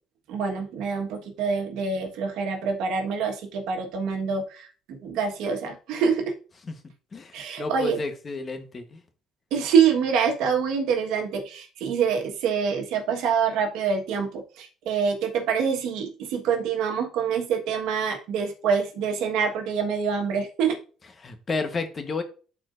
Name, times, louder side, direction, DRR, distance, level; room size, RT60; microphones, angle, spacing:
voice 1, 0.3-6.3 7.3-8.0 9.5-20.8, right 6 dB, 80° right, 3 dB, 1.4 m, -26 dB
voice 2, 7.1-9.0 21.2-22.2, left 3 dB, 30° left, 7 dB, 1.1 m, -31 dB
12.5 x 4.4 x 2.6 m, 0.38 s
cardioid pair, 115°, 0 cm